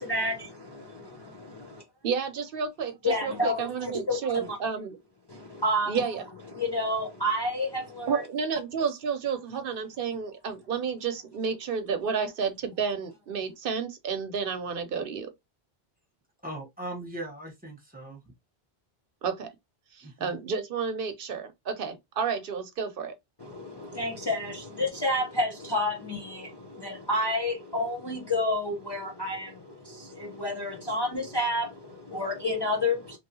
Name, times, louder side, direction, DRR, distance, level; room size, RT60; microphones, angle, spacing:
voice 1, 0.0-1.8 3.0-4.6 5.3-6.0 6.5-8.2 23.4-33.2, left 1 dB, 30° left, 0.6 m, -30 dB
voice 2, 2.0-5.0 5.9-6.2 8.1-15.3 19.2-19.5 19.9-23.1, right 6 dB, 65° right, 0.8 m, -31 dB
voice 3, 16.4-18.2 20.0-20.4, right 1 dB, 10° right, 1.1 m, -39 dB
3.0 x 2.7 x 2.7 m
omnidirectional pair, 1.0 m